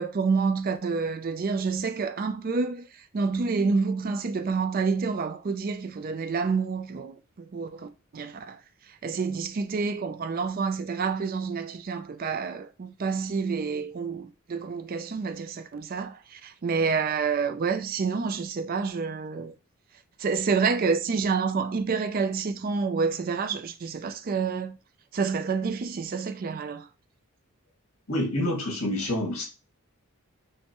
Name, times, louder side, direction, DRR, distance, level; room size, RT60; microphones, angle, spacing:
voice 1, 0.0-8.6 8.9-19.5 20.2-24.8 25.1-26.9, right 5 dB, 40° right, 0.4 m, -28 dB
voice 2, 28.1-29.4, left 1 dB, 70° left, 1.8 m, -27 dB
6.4 x 2.1 x 3.0 m
head